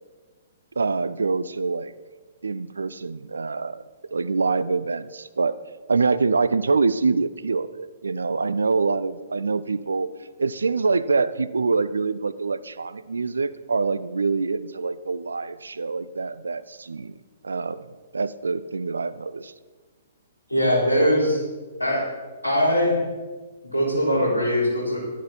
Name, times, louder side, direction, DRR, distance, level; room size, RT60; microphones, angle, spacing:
voice 1, 0.8-1.9 2.4-3.8 4.1-5.6 5.9-10.1 10.4-17.1 17.4-17.9 18.1-19.5, right 4 dB, 70° right, 16 dB, 0.4 m, -25 dB
voice 2, 20.5-21.4 21.8-22.0 22.4-23.0 23.7-25.0, equal, 80° left, -3 dB, 3.5 m, -21 dB
11.0 x 10.0 x 4.2 m, 1.3 s
figure-of-eight pair, 120°, 0 cm